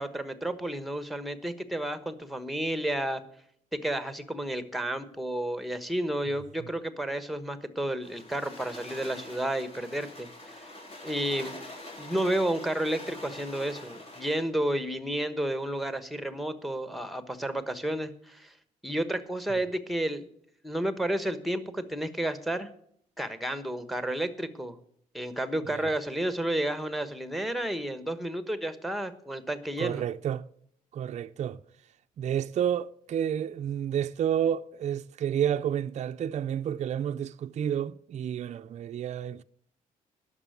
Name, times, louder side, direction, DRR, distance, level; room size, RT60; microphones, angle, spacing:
voice 1, 0.0-3.2 3.7-10.6 11.0-11.6 12.0-18.5 18.8-20.3 20.6-22.7 23.2-24.8 25.1-30.0, right 1 dB, ahead, 1.2 m, -31 dB
sound 1, 8.0-14.5, left 1 dB, 45° left, 3.3 m, -45 dB
voice 2, 29.8-30.4 30.9-31.6 32.2-39.4, right 9 dB, 50° right, 0.5 m, -30 dB
11.0 x 6.8 x 8.0 m
cardioid pair, 95°, 15 cm